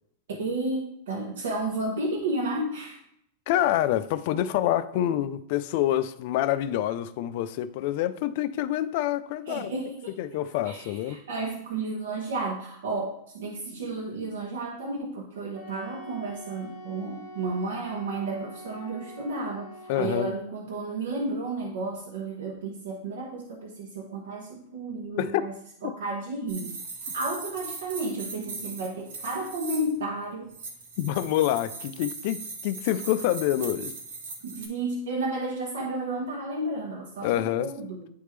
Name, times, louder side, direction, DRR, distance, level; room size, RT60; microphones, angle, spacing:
voice 1, 0.3-3.0 9.5-10.2 10.6-25.5 25.8-26.8 27.1-30.6 34.4-38.1, right 2 dB, 85° right, 1.0 m, -32 dB
voice 2, 3.5-9.7 10.2-11.2 19.9-20.4 25.2-25.5 25.8-25.9 31.0-33.9 37.2-37.7, left 12 dB, 45° left, 0.4 m, -27 dB
Wind instrument woodwind instrument, 15.5-20.4, left 1 dB, 40° right, 1.7 m, -45 dB
sound 1, 26.5-30.0 30.5-34.7, right 4 dB, 65° right, 1.3 m, -39 dB
10.0 x 3.5 x 3.2 m
supercardioid pair, 170°, 0 cm